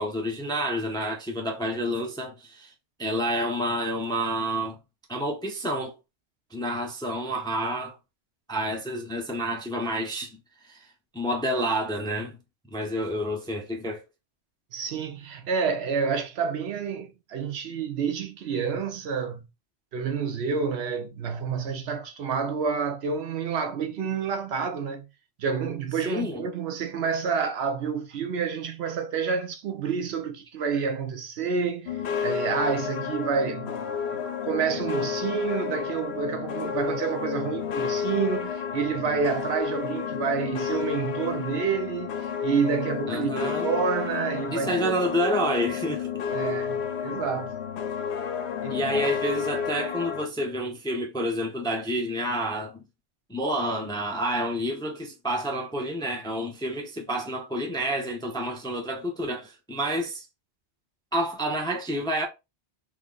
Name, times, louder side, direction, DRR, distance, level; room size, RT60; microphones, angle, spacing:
voice 1, 0.0-2.7 3.0-4.8 5.1-5.9 6.5-8.0 8.5-12.4 12.7-14.0 26.0-26.4 43.1-43.7 44.5-46.1 48.7-52.8 53.3-60.3 61.1-62.3, equal, 5° left, 0.4 m, -29 dB
voice 2, 14.7-19.4 19.9-25.1 25.4-33.9 34.1-44.9 46.3-46.8 47.0-47.6 48.6-49.1, right 6 dB, 70° right, 0.8 m, -29 dB
sound 1, 31.9-50.3, left 7 dB, 70° left, 0.8 m, -31 dB
3.2 x 2.0 x 3.7 m
omnidirectional pair, 1.1 m